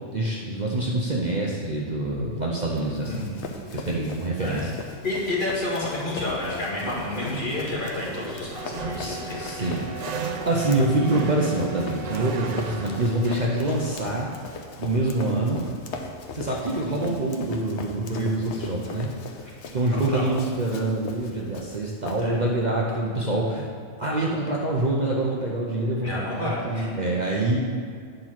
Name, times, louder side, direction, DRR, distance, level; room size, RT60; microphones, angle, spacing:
voice 1, 0.1-3.3 3.7-4.8 8.9-14.3 14.8-15.6 16.3-19.1 19.7-23.7 24.0-26.1 26.3-27.6, right 2 dB, 40° right, -3 dB, 0.8 m, -26 dB
Run, 2.7-22.6, left 4 dB, 65° left, 1.0 m, -39 dB
voice 2, 3.1-3.5 4.4-4.7 5.0-9.7 19.9-20.3 22.2-22.4 26.0-26.9, left 2 dB, 40° left, -5 dB, 1.9 m, -30 dB
sound 1, 6.8-15.5, right 5 dB, 90° right, 0.3 m, -37 dB
Wind instrument woodwind instrument, 8.5-13.4, right 2 dB, ahead, 0.4 m, -40 dB
9.0 x 4.5 x 5.9 m, 2.2 s
omnidirectional pair, 1.3 m